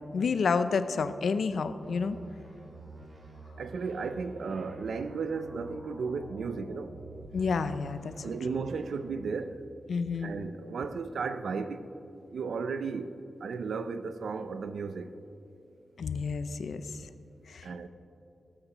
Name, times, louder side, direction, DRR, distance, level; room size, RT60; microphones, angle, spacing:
voice 1, 0.1-2.2 7.3-8.1 9.9-10.4 16.0-16.8 17.5-17.7, left 5 dB, 80° left, 0.5 m, -29 dB
sound 1, 1.8-7.3 7.6-9.0, right 2 dB, 50° right, 2.7 m, -48 dB
voice 2, 3.6-6.9 8.2-9.5 10.2-11.9 12.3-13.1 13.4-15.1 17.6-17.9, right 5 dB, 85° right, 0.5 m, -34 dB
17.0 x 8.8 x 3.0 m
wide cardioid pair, 100°, 0 cm